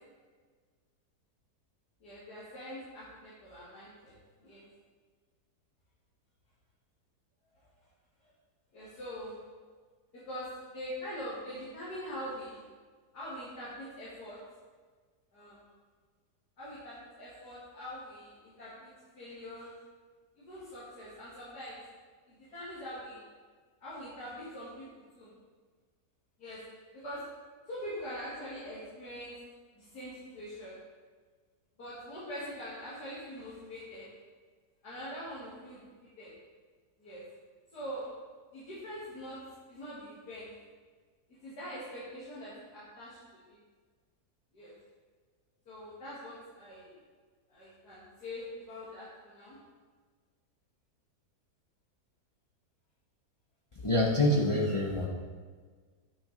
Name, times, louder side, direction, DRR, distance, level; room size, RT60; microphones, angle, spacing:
voice 1, 2.0-4.1 4.4-4.6 8.7-9.4 10.3-12.6 13.1-14.4 15.3-15.7 16.6-19.7 20.4-21.8 22.3-23.2 23.8-25.3 26.4-26.6 26.9-27.2 27.7-29.4 29.7-30.8 31.8-34.1 34.8-35.8 36.2-36.3 37.0-37.2 37.7-38.1 38.5-39.4 39.7-40.5 41.4-43.2 43.5-43.6 44.5-44.7 45.7-47.0 47.5-49.6, equal, 70° left, -9 dB, 2.3 m, -43 dB
voice 2, 53.7-55.1, left 1 dB, 40° left, -2 dB, 0.4 m, -26 dB
8.3 x 5.9 x 3.9 m, 1.5 s
omnidirectional pair, 1.7 m